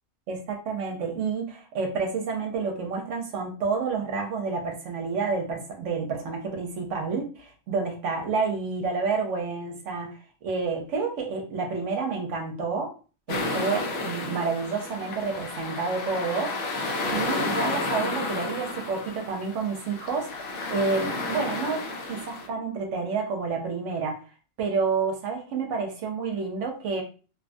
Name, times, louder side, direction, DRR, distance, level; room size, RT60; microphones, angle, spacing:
voice 1, 0.3-10.2 10.4-12.9 13.3-16.5 17.1-20.3 20.7-24.2 24.6-27.0, right 4 dB, 65° right, 2 dB, 0.9 m, -29 dB
sound 1, 13.3-22.5, left 2 dB, 60° left, 0.7 m, -31 dB
2.9 x 2.2 x 2.5 m, 0.36 s
omnidirectional pair, 1.4 m